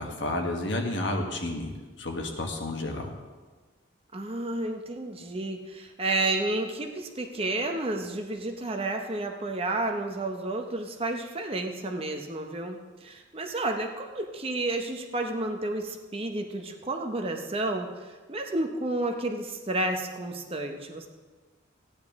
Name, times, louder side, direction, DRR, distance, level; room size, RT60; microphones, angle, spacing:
voice 1, 0.0-1.7 2.0-3.1, left 1 dB, 65° left, 2 dB, 1.4 m, -31 dB
voice 2, 4.1-21.1, right 2 dB, 30° right, 4 dB, 0.7 m, -31 dB
14.0 x 9.7 x 3.6 m, 1.3 s
head